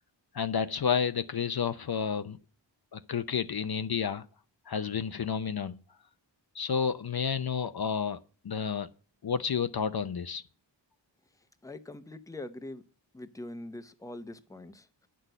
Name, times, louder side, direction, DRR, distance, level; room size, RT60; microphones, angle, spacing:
voice 1, 0.3-2.4 2.9-4.2 4.7-5.8 6.5-8.9 9.2-10.4, left 6 dB, 55° left, 0.6 m, -30 dB
voice 2, 11.6-12.8 13.1-15.1, left 1 dB, 10° left, 0.8 m, -43 dB
9.5 x 6.2 x 6.5 m
wide cardioid pair, 90°, 45 cm